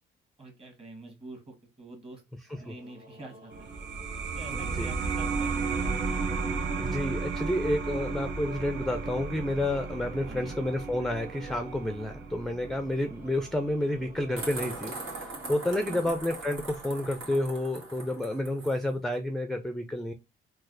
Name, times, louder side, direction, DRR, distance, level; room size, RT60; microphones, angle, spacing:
voice 1, 0.4-2.2 2.6-3.7 4.3-5.6 10.3-10.6 15.9-16.2, right 2 dB, 30° right, 2 dB, 1.5 m, -46 dB
sound 1, 2.5-15.0, right 3 dB, 45° right, 1.4 m, -47 dB
sound 2, 3.5-14.7, right 4 dB, 65° right, 0.7 m, -34 dB
voice 2, 6.8-20.1, left 1 dB, ahead, 7 dB, 0.4 m, -30 dB
sound 3, 14.4-18.8, right 2 dB, 80° right, 1.5 m, -40 dB
3.9 x 2.3 x 2.5 m, 0.23 s
cardioid pair, 90°, 20 cm